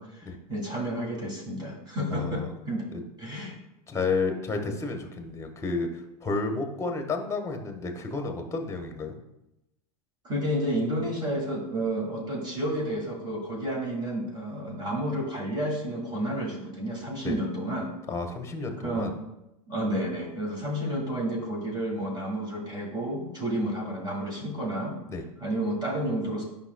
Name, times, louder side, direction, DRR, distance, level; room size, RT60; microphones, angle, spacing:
voice 1, 0.0-2.9 3.2-3.6 10.2-17.9 18.8-19.1 19.7-25.0 25.4-26.4, right 1 dB, 20° right, -1 dB, 2.0 m, -31 dB
voice 2, 2.1-2.5 2.9-3.0 3.9-5.9 6.2-9.2 17.2-17.4 18.1-19.1 25.1-25.2, left 3 dB, 15° left, 4 dB, 1.2 m, -31 dB
9.7 x 5.5 x 2.2 m, 0.90 s
hypercardioid pair, 90°, 20 cm